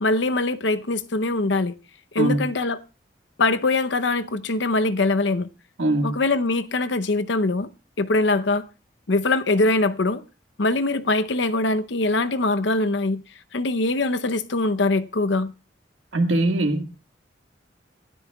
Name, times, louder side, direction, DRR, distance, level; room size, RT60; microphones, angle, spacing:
voice 1, 0.0-1.7 2.1-2.8 3.4-5.5 6.0-7.7 8.0-8.6 9.1-10.2 10.6-13.2 13.5-15.5, left 2 dB, 75° left, 0.8 m, -22 dB
voice 2, 2.2-2.5 5.8-6.2 16.1-16.8, right 1 dB, 90° right, 1.8 m, -22 dB
26.5 x 12.5 x 2.3 m
head